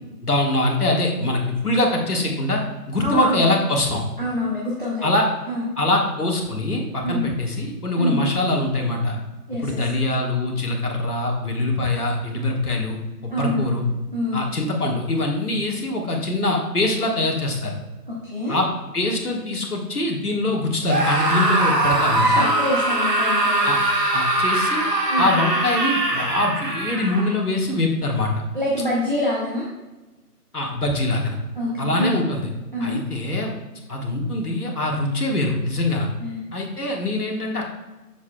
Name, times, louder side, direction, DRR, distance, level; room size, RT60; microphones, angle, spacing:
voice 1, 0.2-2.6 2.9-4.1 5.0-5.2 5.8-9.2 9.6-13.0 13.2-13.9 14.3-17.8 18.5-18.7 18.9-22.5 23.6-23.8 24.1-24.8 25.2-28.3 30.5-31.4 31.8-32.5 32.8-33.5 33.9-36.1 36.5-37.6, left 2 dB, 65° left, 0 dB, 1.6 m, -23 dB
voice 2, 3.0-3.5 4.2-5.1 5.5-5.6 7.0-7.2 8.0-8.2 9.5-9.8 13.3-13.7 14.1-14.5 18.1-18.6 22.2-23.7 25.1-25.3 28.5-29.7 31.6-32.2 32.7-33.0 36.2-36.4, equal, 30° right, -6 dB, 0.9 m, -26 dB
Screaming, 20.8-27.3, right 1 dB, 85° right, 1.6 m, -21 dB
7.1 x 6.6 x 2.2 m, 1.1 s
figure-of-eight pair, 175°, 48 cm